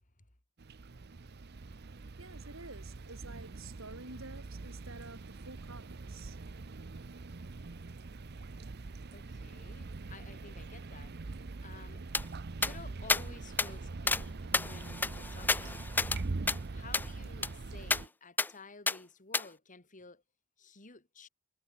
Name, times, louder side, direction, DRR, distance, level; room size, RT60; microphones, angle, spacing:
sound 1, 0.6-18.1, right 3 dB, 50° right, 0.7 m, -43 dB
voice 1, 2.2-6.4, right 3 dB, 70° right, 7.4 m, -50 dB
voice 2, 9.1-11.2 11.6-12.0 12.5-16.0 16.7-20.2 20.6-21.3, left 3 dB, 40° left, 2.8 m, -53 dB
sound 2, 12.1-12.2 12.6-12.7 13.1-13.2 13.6-13.7 14.1-14.2 14.5-16.2 16.5-16.6 16.9-17.1 17.4-17.5 17.9-18.0 18.4-18.5 18.9-19.0 19.3-19.4, left 3 dB, 10° left, 0.3 m, -30 dB
head